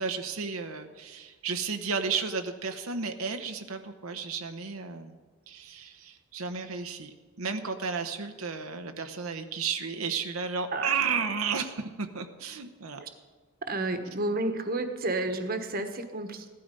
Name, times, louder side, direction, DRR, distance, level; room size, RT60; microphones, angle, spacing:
voice 1, 0.0-5.2 5.5-13.0, right 5 dB, 90° right, 6 dB, 1.0 m, -33 dB
voice 2, 13.7-16.5, right 2 dB, 45° right, 7 dB, 1.3 m, -31 dB
16.0 x 12.5 x 5.4 m, 1.4 s
head